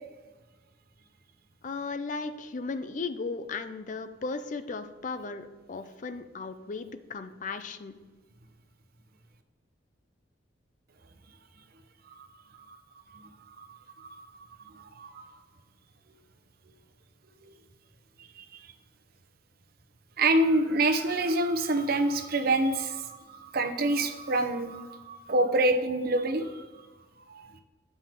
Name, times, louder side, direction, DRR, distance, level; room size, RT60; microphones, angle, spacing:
voice 1, 1.6-8.0, left 4 dB, 45° left, 10 dB, 0.5 m, -36 dB
voice 2, 13.1-15.4 17.4-17.5 18.2-18.7 20.2-26.9 27.3-27.6, right 2 dB, 55° right, 6 dB, 0.8 m, -28 dB
7.6 x 5.5 x 4.6 m, 1.3 s
head